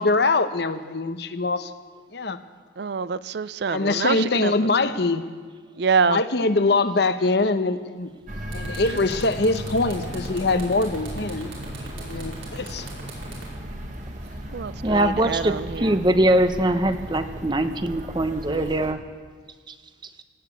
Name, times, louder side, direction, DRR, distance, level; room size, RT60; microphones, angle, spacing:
voice 1, 0.0-1.7 2.1-2.4 3.7-5.2 6.0-8.1 8.5-11.5 12.0-12.9, left 3 dB, 55° left, 10 dB, 0.8 m, -23 dB
voice 2, 2.8-4.5 5.8-6.2 8.9-9.0 14.5-15.9, right 5 dB, 55° right, 16 dB, 0.4 m, -25 dB
sound 1, 8.0-8.2 8.5-14.6, right 3 dB, 85° right, 5.3 m, -42 dB
sound 2, 8.3-18.9, equal, 40° right, 1.5 m, -36 dB
voice 3, 14.8-19.0 19.7-19.8, right 1 dB, 25° right, 9 dB, 0.8 m, -22 dB
17.5 x 9.1 x 8.4 m, 1.5 s
head